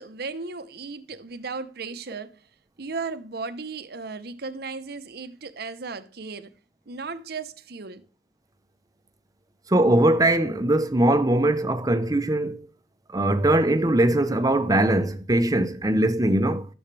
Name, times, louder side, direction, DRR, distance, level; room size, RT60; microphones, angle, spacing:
voice 1, 0.0-2.4 2.8-6.5 6.9-8.0, right 4 dB, 60° right, 0.9 m, -35 dB
voice 2, 9.7-12.6 13.1-16.7, right 1 dB, 20° right, 0.8 m, -21 dB
13.0 x 7.2 x 3.3 m
head